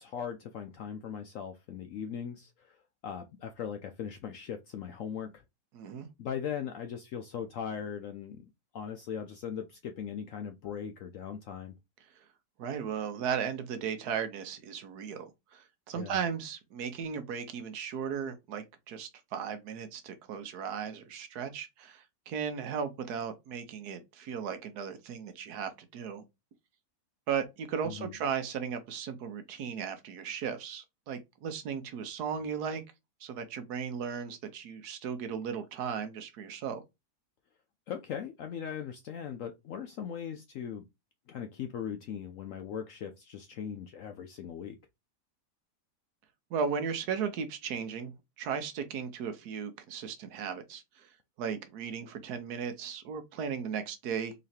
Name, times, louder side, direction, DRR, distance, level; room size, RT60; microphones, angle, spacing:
voice 1, 0.0-5.4 6.2-11.8 16.0-16.2 27.8-28.2 37.9-40.9 41.3-44.8, left 8 dB, 70° left, 0.7 m, -39 dB
voice 2, 5.7-6.1 12.6-15.3 15.5-26.2 27.3-32.8 33.2-36.8 46.5-48.1 48.4-51.1 51.4-54.3, right 7 dB, 75° right, 1.2 m, -36 dB
3.9 x 3.1 x 2.7 m
omnidirectional pair, 1.8 m